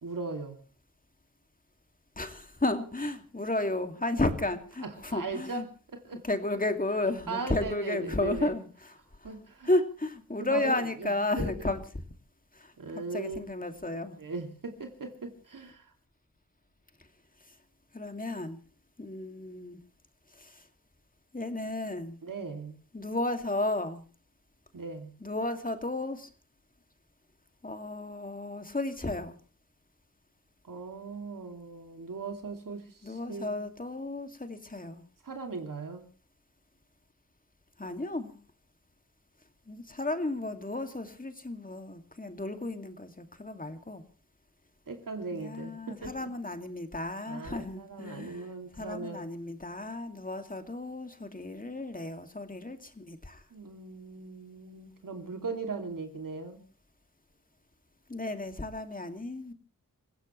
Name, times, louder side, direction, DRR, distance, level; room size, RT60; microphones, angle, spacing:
voice 1, 0.0-0.6 4.8-5.7 5.9-6.2 7.3-8.5 9.2-9.7 10.4-11.5 12.8-13.6 14.2-15.9 22.2-22.8 24.7-25.1 30.6-33.5 35.2-36.1 44.9-46.3 47.3-49.2 53.5-56.6, right 4 dB, 75° right, 4 dB, 2.7 m, -38 dB
voice 2, 2.2-5.7 6.2-8.9 9.2-9.3 9.6-11.8 12.5-12.7 13.1-14.2 17.9-18.6 19.0-19.8 20.3-20.6 21.3-22.2 22.9-24.0 25.2-26.3 27.6-29.4 33.0-35.0 37.8-38.4 39.7-44.0 45.3-53.4 58.1-59.5, left 2 dB, 25° left, 7 dB, 2.4 m, -33 dB
26.5 x 16.0 x 3.2 m, 0.37 s
wide cardioid pair, 70°, 33 cm